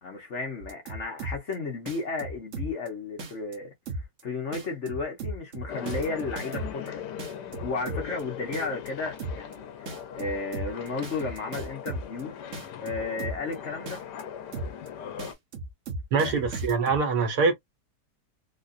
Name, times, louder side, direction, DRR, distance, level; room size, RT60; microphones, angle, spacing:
voice 1, 0.0-3.7 4.2-7.0 7.6-12.4 12.8-14.0 16.2-16.5, left 4 dB, 45° left, 1.3 m, -33 dB
sound 1, 0.6-1.5 1.9-2.9 3.2-3.5 3.9-4.2 4.5-6.9 7.2-8.2 8.5-8.9 9.2-9.5 9.9-12.2 12.5-13.5 13.9-14.2 14.5-14.9 15.2-17.0, right 2 dB, 50° right, 1.2 m, -35 dB
sound 2, 5.7-15.3, left 8 dB, 80° left, 1.3 m, -40 dB
voice 2, 16.1-17.5, right 4 dB, 70° right, 1.5 m, -24 dB
3.9 x 2.4 x 2.6 m
omnidirectional pair, 1.8 m